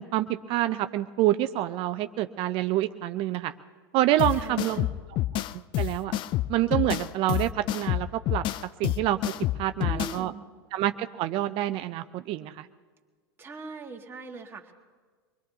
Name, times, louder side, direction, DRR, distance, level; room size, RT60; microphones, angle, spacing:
voice 1, 0.0-3.5 3.9-4.9 5.8-6.1 6.5-8.4 8.8-9.2 9.6-10.3 10.7-12.7, right 14 dB, 45° right, 10 dB, 0.6 m, -27 dB
sound 1, 4.2-10.2, left 14 dB, 40° left, 0.5 m, -28 dB
voice 2, 4.3-4.9 9.8-10.4 13.4-14.7, right 3 dB, 20° right, 1 dB, 1.8 m, -41 dB
25.0 x 20.5 x 2.8 m, 1.5 s
hypercardioid pair, 105°, 12 cm